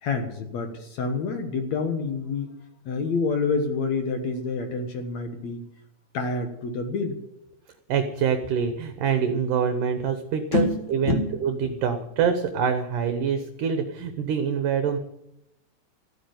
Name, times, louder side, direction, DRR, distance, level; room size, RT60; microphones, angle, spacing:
voice 1, 0.0-2.5 2.9-5.6 6.1-7.2 10.5-10.8 11.0-11.3, left 4 dB, 60° left, 5 dB, 2.0 m, -27 dB
voice 2, 7.9-15.0, right 7 dB, 70° right, 7 dB, 2.2 m, -25 dB
14.5 x 8.6 x 9.2 m, 0.86 s
omnidirectional pair, 4.5 m